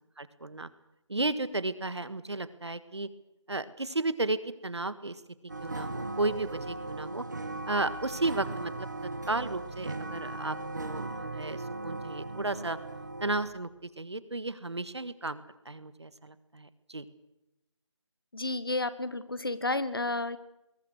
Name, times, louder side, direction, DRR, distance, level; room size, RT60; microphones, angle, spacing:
voice 1, 0.2-0.7 1.1-3.1 3.5-5.2 5.6-7.2 7.7-12.8 13.2-17.0, right 2 dB, 60° right, 14 dB, 1.6 m, -34 dB
sound 1, 5.5-13.5, right 2 dB, 35° right, 2.1 m, -38 dB
voice 2, 18.3-20.4, left 2 dB, 50° left, 14 dB, 1.4 m, -31 dB
25.0 x 21.5 x 6.4 m, 0.89 s
figure-of-eight pair, 175°, 16 cm